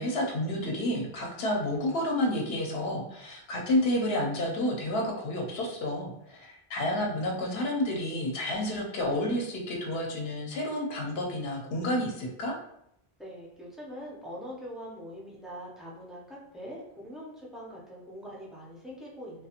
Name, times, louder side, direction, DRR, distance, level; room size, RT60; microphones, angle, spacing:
voice 1, 0.0-12.5, left 1 dB, 75° left, 0 dB, 0.8 m, -30 dB
voice 2, 13.2-19.5, equal, ahead, -5 dB, 0.4 m, -43 dB
2.4 x 2.2 x 2.8 m, 0.76 s
omnidirectional pair, 1.1 m